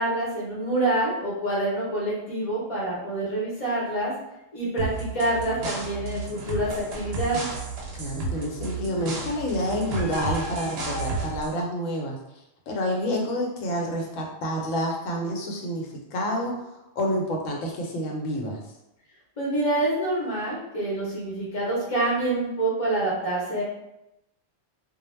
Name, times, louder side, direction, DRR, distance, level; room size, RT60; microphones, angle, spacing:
voice 1, 0.0-4.1 4.5-7.5 19.4-23.6, right 2 dB, 35° left, -6 dB, 0.7 m, -26 dB
sound 1, 4.8-11.5, right 2 dB, 65° right, 0.7 m, -32 dB
voice 2, 7.9-12.2 12.7-18.6, equal, 80° left, 0 dB, 1.0 m, -28 dB
2.2 x 2.0 x 3.1 m, 0.88 s
omnidirectional pair, 1.3 m